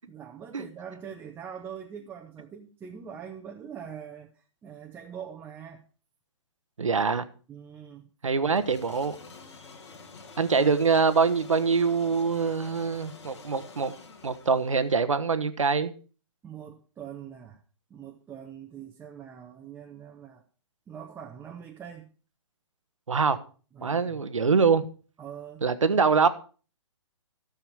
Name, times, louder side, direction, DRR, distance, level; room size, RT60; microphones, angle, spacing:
voice 1, 0.1-4.3 4.6-5.8 7.5-8.1 16.4-17.6 17.9-20.4 20.9-22.1 23.8-24.2 25.2-25.6, right 8 dB, 15° right, 0.8 m, -43 dB
voice 2, 6.8-7.2 8.2-9.2 10.4-14.0 14.2-15.9 23.1-23.4 23.8-24.8 25.6-26.3, right 5 dB, 80° right, 1.0 m, -24 dB
sound 1, 8.6-15.1, left 4 dB, 60° left, 2.2 m, -48 dB
13.0 x 7.1 x 4.7 m
figure-of-eight pair, 130°, 16 cm